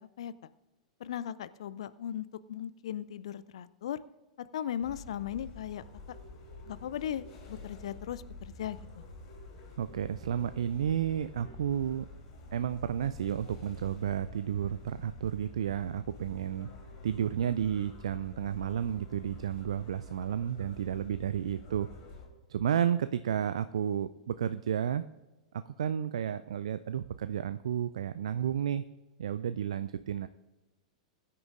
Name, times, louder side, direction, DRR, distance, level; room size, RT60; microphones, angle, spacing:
voice 1, 1.0-4.0 4.4-5.8 6.6-9.0, left 10 dB, 60° left, 17 dB, 0.5 m, -38 dB
sound 1, 4.8-22.3, left 2 dB, 45° left, 3.3 m, -48 dB
voice 2, 9.8-12.1 12.5-16.7 17.0-21.9 22.5-25.0 25.5-28.8 29.2-30.3, right 9 dB, 60° right, 13 dB, 0.4 m, -32 dB
21.5 x 9.7 x 2.5 m, 1.1 s
figure-of-eight pair, 95°, 4 cm